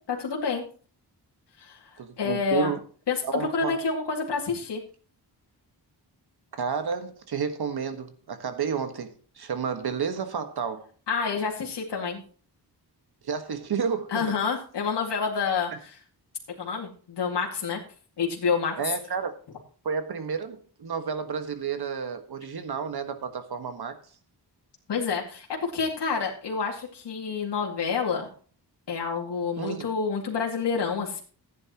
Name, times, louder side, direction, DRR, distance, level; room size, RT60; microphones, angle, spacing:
voice 1, 0.1-0.6 1.6-2.7 3.1-4.8 11.1-12.2 14.1-15.7 16.6-17.8 18.2-18.8 24.9-28.3 28.9-31.2, left 5 dB, 75° left, 2.4 m, -28 dB
voice 2, 2.0-2.8 3.2-3.8 6.6-10.9 13.2-14.4 18.8-19.3 19.8-24.0 29.6-29.9, right 6 dB, 65° right, 1.6 m, -31 dB
15.0 x 9.5 x 3.0 m
wide cardioid pair, 110°, 41 cm